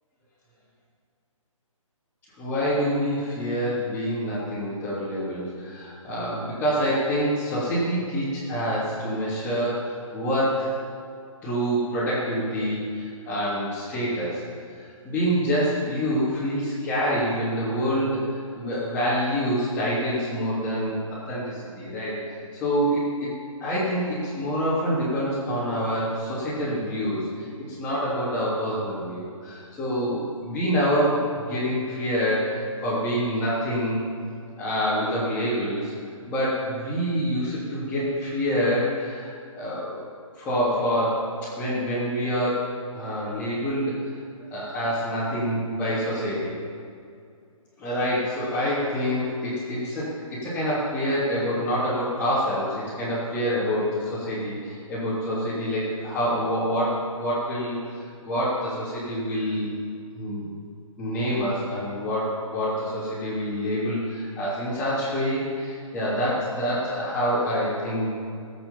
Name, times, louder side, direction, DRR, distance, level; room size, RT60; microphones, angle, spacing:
voice 1, 2.4-10.7 11.4-14.4 15.0-22.2 22.6-23.3 23.6-34.1 34.6-35.9 36.3-40.0 40.3-42.7 42.9-43.9 44.5-46.5 47.8-59.7 60.1-60.5 61.0-68.1, equal, 10° left, -13 dB, 3.2 m, -26 dB
17.0 x 8.4 x 7.3 m, 2.4 s
hypercardioid pair, 165°, 18 cm